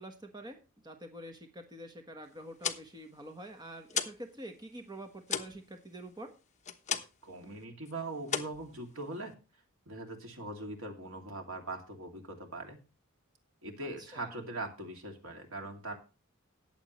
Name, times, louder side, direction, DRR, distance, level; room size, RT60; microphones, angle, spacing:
voice 1, 0.0-6.3 14.0-14.4, right 1 dB, 20° right, 5 dB, 1.3 m, -47 dB
sound 1, 2.4-4.3 4.6-7.3 7.6-7.9 8.2-9.3, left 7 dB, 35° left, 1.1 m, -37 dB
voice 2, 7.2-9.3 9.9-12.8 13.6-16.0, right 2 dB, 75° right, 2 dB, 2.6 m, -41 dB
18.5 x 7.3 x 3.2 m, 0.31 s
head